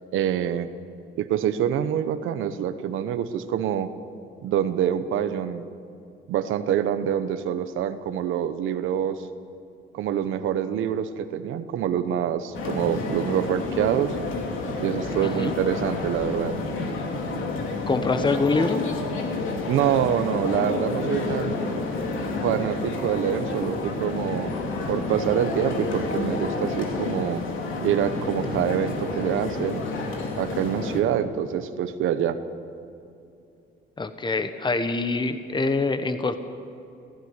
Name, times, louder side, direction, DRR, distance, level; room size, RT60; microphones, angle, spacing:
voice 1, 0.1-0.7 1.1-3.9 4.4-5.6 6.3-9.2 9.9-14.2 14.8-16.6 19.7-21.7 22.4-24.5 24.9-27.4 27.8-29.8 30.4-32.4, right 9 dB, 85° right, 10 dB, 1.1 m, -26 dB
sound 1, 12.5-31.0, left 3 dB, 80° left, 3.0 m, -29 dB
voice 2, 15.2-15.5 17.9-18.8 34.0-36.4, left 3 dB, 25° left, 9 dB, 1.3 m, -25 dB
17.5 x 15.0 x 9.8 m, 2.6 s
cardioid pair, 90°, 20 cm